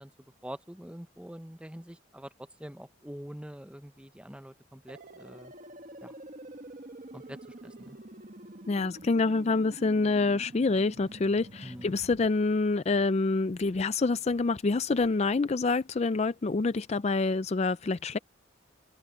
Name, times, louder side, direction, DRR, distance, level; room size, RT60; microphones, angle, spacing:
voice 1, 0.0-2.3 2.6-5.5 6.0-6.1 7.1-7.4 7.6-8.0 11.6-11.9, equal, 5° right, 0.8 m, -45 dB
sound 1, 4.9-12.3, right 1 dB, 45° right, 1.5 m, -47 dB
voice 2, 8.7-18.2, left 3 dB, 35° left, 0.4 m, -27 dB
head